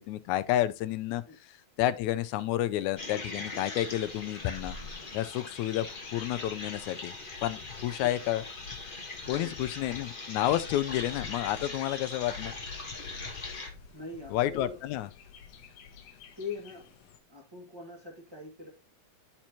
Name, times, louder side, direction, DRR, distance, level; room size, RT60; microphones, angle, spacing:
voice 1, 0.0-1.5 1.8-4.8 5.1-5.9 6.1-7.2 7.4-8.4 9.3-12.5 14.3-15.1, left 13 dB, 90° left, 2.1 m, -30 dB
sound 1, 3.0-13.7, left 3 dB, 50° left, 0.6 m, -41 dB
Bird, 3.5-17.2, left 6 dB, 70° left, 2.1 m, -49 dB
voice 2, 9.2-9.5 13.9-14.8 16.3-16.9 17.3-18.7, left 3 dB, 15° right, 0.8 m, -42 dB
12.5 x 4.5 x 2.8 m
omnidirectional pair, 3.3 m